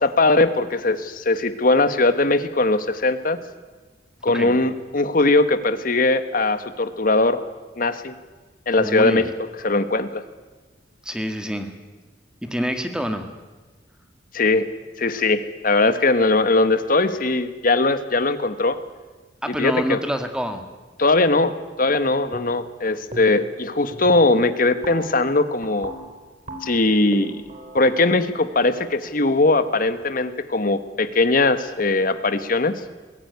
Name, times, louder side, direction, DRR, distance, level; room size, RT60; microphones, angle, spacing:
voice 1, 0.0-3.4 4.2-7.4 7.8-8.1 8.7-9.3 9.6-10.2 14.3-14.7 15.0-18.8 19.5-20.0 21.0-21.5 21.8-25.9 26.6-27.4 27.7-32.7, left 2 dB, 50° left, 11 dB, 1.4 m, -20 dB
voice 2, 8.8-9.2 11.0-11.7 12.4-13.3 19.4-20.6, equal, 5° right, 6 dB, 1.9 m, -26 dB
sound 1, 22.3-22.8 23.1-23.6 23.9-29.7, right 2 dB, 40° right, 3.4 m, -39 dB
22.0 x 16.5 x 9.6 m, 1.3 s
head